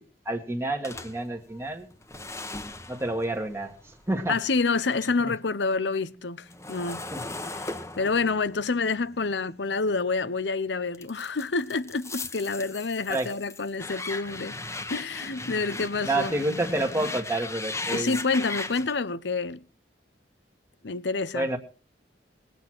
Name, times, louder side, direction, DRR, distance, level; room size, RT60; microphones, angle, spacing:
voice 1, 0.0-1.9 2.9-4.4 7.1-7.2 13.1-13.3 16.0-18.1 21.3-21.6, right 2 dB, 15° right, 1.6 m, -29 dB
sound 1, 0.8-5.1 5.5-10.4 10.9-18.9, left 2 dB, 15° left, 1.2 m, -38 dB
voice 2, 4.3-7.0 7.5-14.6 14.9-16.3 17.9-19.6 20.8-21.5, left 4 dB, 80° left, 0.8 m, -28 dB
20.0 x 8.2 x 6.0 m
head